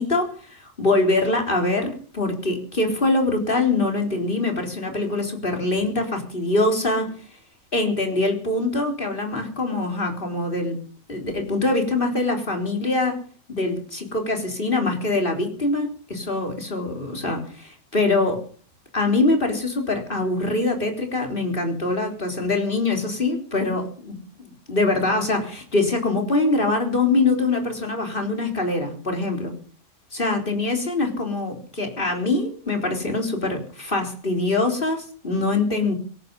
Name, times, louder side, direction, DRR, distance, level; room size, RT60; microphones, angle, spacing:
voice 1, 0.0-7.1 7.7-10.8 11.1-13.2 13.5-18.4 18.9-29.5 30.2-35.9, left 2 dB, 35° left, 3 dB, 4.1 m, -24 dB
18.5 x 14.5 x 5.5 m, 0.43 s
omnidirectional pair, 1.7 m